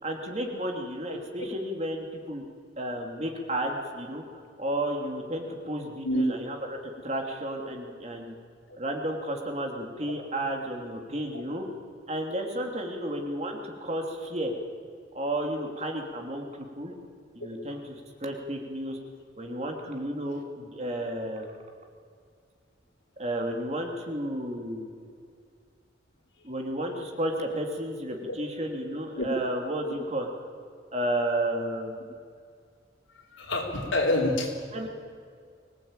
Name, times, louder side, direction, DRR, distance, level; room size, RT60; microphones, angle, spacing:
voice 1, 0.0-2.4 2.8-4.2 4.6-6.6 7.0-8.3 8.8-11.6 12.1-14.5 15.1-16.9 17.3-19.0 19.4-21.5 23.2-24.9 26.4-30.3 30.9-32.1 34.7-34.9, right 1 dB, 35° right, 2 dB, 2.9 m, -32 dB
voice 2, 1.1-1.5 6.0-6.2 10.1-10.2 29.2-29.3 33.3-34.5, left 1 dB, 85° left, 0 dB, 4.5 m, -27 dB
24.5 x 18.0 x 9.0 m, 2.2 s
head